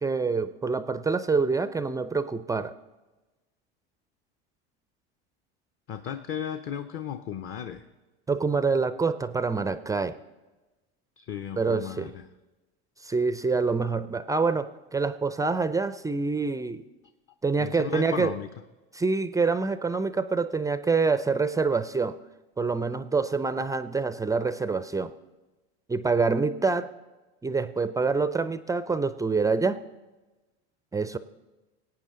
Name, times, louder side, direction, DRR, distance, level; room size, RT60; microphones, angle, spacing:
voice 1, 0.0-2.7 8.3-10.2 11.6-12.1 13.0-16.8 17.4-18.3 18.9-22.2 22.6-25.1 25.9-26.9 27.4-29.8 30.9-31.2, right 4 dB, 10° right, 13 dB, 0.3 m, -26 dB
voice 2, 5.9-7.8 11.2-12.2 17.6-18.5, left 8 dB, 40° left, 8 dB, 0.7 m, -35 dB
18.0 x 8.8 x 3.7 m, 1.1 s
hypercardioid pair, 95°, 33 cm